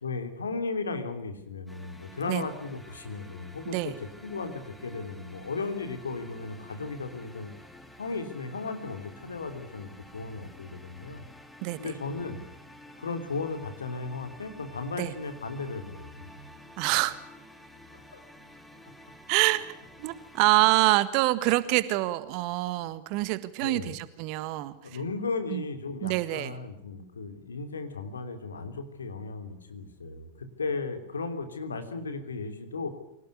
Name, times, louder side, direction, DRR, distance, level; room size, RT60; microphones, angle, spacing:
voice 1, 0.0-7.5 8.0-11.2 11.8-12.4 13.0-16.4 18.1-18.2 20.5-20.6 23.6-24.0 24.8-32.9, left 4 dB, 70° left, 8 dB, 3.3 m, -35 dB
sound 1, 1.7-21.0, left 1 dB, 5° left, 3.0 m, -51 dB
voice 2, 11.6-11.9 15.0-15.1 16.8-17.1 19.3-19.7 20.0-24.7 25.5-25.6 26.0-26.5, right 18 dB, 45° right, 15 dB, 1.6 m, -26 dB
25.0 x 18.0 x 9.5 m, 0.80 s
figure-of-eight pair, 90°, 0 cm